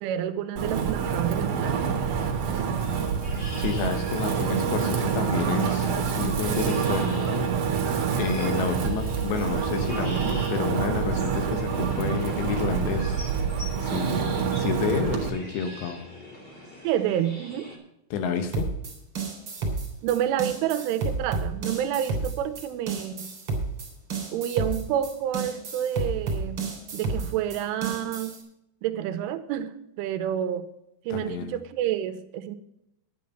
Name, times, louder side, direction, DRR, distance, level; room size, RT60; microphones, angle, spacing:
voice 1, 0.0-1.7 16.8-17.7 20.0-23.3 24.3-28.4 28.8-30.7 31.1-32.6, right 10 dB, 85° right, 9 dB, 3.2 m, -29 dB
Wind, 0.6-15.3, right 6 dB, 55° right, 2.5 m, -27 dB
sound 1, 2.4-17.8, left 1 dB, 20° left, 1.8 m, -44 dB
voice 2, 3.6-7.5 8.2-13.2 13.8-16.0 18.1-18.7 31.1-31.5, left 6 dB, 70° left, 7 dB, 3.1 m, -30 dB
sound 2, 18.5-28.4, right 3 dB, 30° right, 3.3 m, -31 dB
11.0 x 9.6 x 5.6 m, 0.83 s
omnidirectional pair, 5.7 m